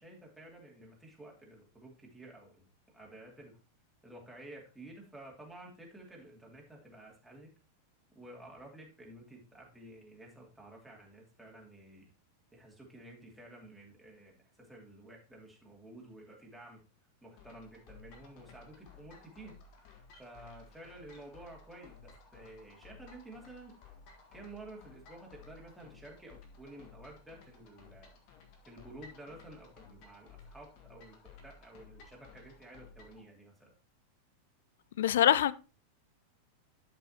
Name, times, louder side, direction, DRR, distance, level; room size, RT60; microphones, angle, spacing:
voice 1, 0.0-2.7 2.9-3.6 4.0-7.5 8.1-12.1 12.5-16.8 17.2-19.6 20.2-23.7 24.3-28.2 28.6-33.7, right 1 dB, 5° right, 2.6 m, -52 dB
sound 1, 17.4-33.2, left 5 dB, 45° left, 1.6 m, -56 dB
voice 2, 35.0-35.5, left 11 dB, 60° left, 0.4 m, -24 dB
11.5 x 5.6 x 2.9 m
figure-of-eight pair, 90°, 0 cm